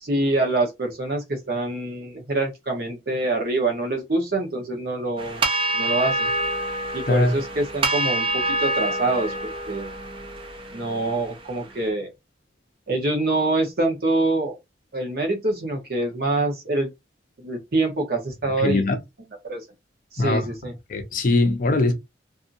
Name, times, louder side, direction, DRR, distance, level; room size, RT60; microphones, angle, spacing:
voice 1, 0.0-5.4 5.7-6.3 6.9-9.9 10.7-12.1 12.9-14.5 14.9-16.9 17.4-18.8 19.4-19.6 20.1-20.7, right 2 dB, 55° right, 0.9 m, -25 dB
sound 1, 5.2-11.6, right 1 dB, 30° right, 0.5 m, -27 dB
voice 2, 18.6-19.0 20.2-20.5 20.9-21.9, left 2 dB, 45° left, 0.5 m, -21 dB
2.6 x 2.6 x 2.5 m
head